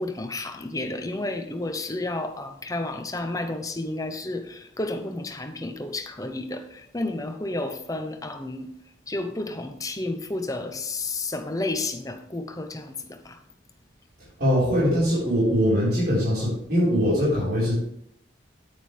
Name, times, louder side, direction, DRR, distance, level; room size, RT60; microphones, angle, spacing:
voice 1, 0.0-8.7 9.1-13.4, left 2 dB, 20° left, 0.8 m, -31 dB
voice 2, 14.4-17.8, equal, 50° right, 4.6 m, -22 dB
9.6 x 9.5 x 3.4 m
head